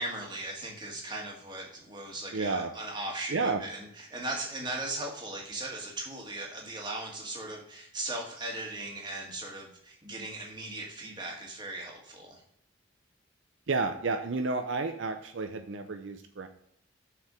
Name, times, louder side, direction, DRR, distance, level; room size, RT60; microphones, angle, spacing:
voice 1, 0.0-12.4, right 2 dB, 20° right, -1 dB, 1.6 m, -38 dB
voice 2, 2.3-2.7 3.3-3.6 13.7-16.5, right 3 dB, 70° right, 6 dB, 0.6 m, -31 dB
6.5 x 4.7 x 4.9 m, 0.70 s
head